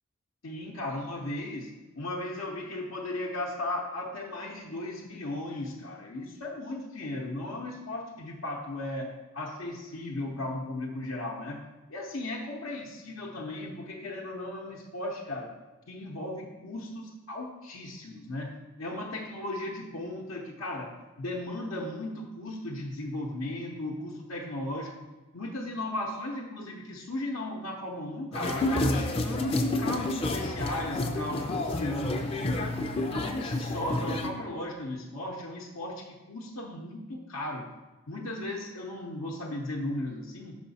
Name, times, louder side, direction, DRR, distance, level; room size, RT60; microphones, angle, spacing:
voice 1, 0.4-11.6 11.9-15.5 15.9-25.1 25.3-32.6 33.0-37.7 38.1-40.6, left 1 dB, 80° left, -3 dB, 0.7 m, -36 dB
sound 1, 28.3-34.3, left 2 dB, 25° left, 0.4 m, -30 dB
6.3 x 5.1 x 4.0 m, 1.2 s
head